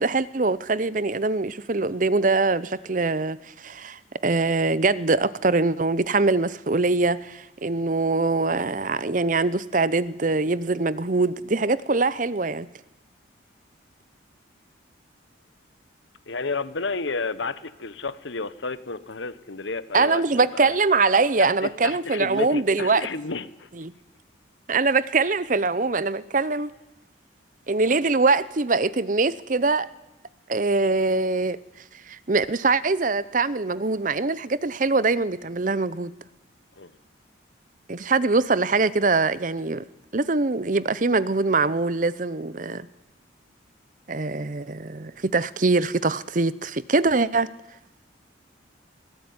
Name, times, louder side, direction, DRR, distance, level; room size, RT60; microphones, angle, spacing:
voice 1, 0.0-12.7 19.9-23.1 23.8-23.9 24.7-26.7 27.7-29.9 30.5-31.6 32.1-36.1 37.9-39.8 40.1-42.9 44.1-47.5, right 3 dB, 40° right, 18 dB, 0.7 m, -23 dB
voice 2, 16.3-20.7 21.4-23.7 36.8-36.9, left 3 dB, 75° left, 15 dB, 1.2 m, -31 dB
23.0 x 19.0 x 9.7 m, 1.0 s
head